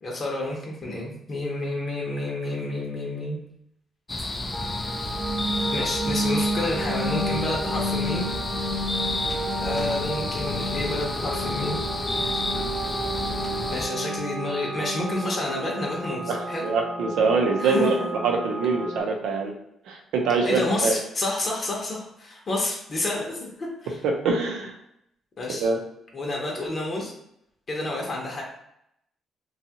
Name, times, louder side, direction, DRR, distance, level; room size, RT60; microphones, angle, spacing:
voice 1, 0.0-3.4 5.7-8.3 9.6-11.8 13.7-16.6 17.6-17.9 20.4-24.0 25.4-25.7 26.1-27.1 27.7-28.4, left 2 dB, 40° left, -2 dB, 0.8 m, -29 dB
sound 1, 4.1-13.8, left 2 dB, 25° left, 0.3 m, -31 dB
sound 2, 4.5-19.0, equal, 25° right, 1.0 m, -31 dB
voice 2, 16.3-18.0 18.2-19.5 19.9-20.9 24.0-24.7 25.5-25.8, right 4 dB, 85° right, 1 dB, 0.6 m, -24 dB
2.7 x 2.3 x 2.8 m, 0.77 s
cardioid pair, 90°, 0 cm